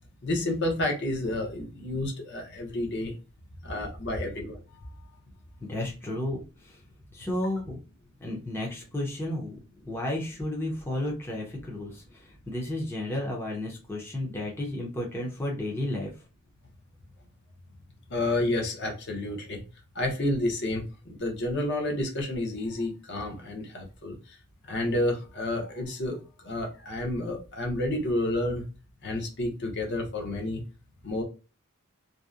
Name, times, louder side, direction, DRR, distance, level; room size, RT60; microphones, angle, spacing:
voice 1, 0.2-3.1 3.6-5.1 18.1-19.6 19.9-24.2 24.7-28.7 29.0-30.6 31.0-31.2, left 1 dB, 50° left, 2 dB, 0.7 m, -30 dB
voice 2, 5.6-6.8 7.1-7.8 8.2-9.6 9.8-16.1, left 1 dB, 10° left, -2 dB, 0.5 m, -32 dB
2.6 x 2.1 x 2.3 m, 0.33 s
head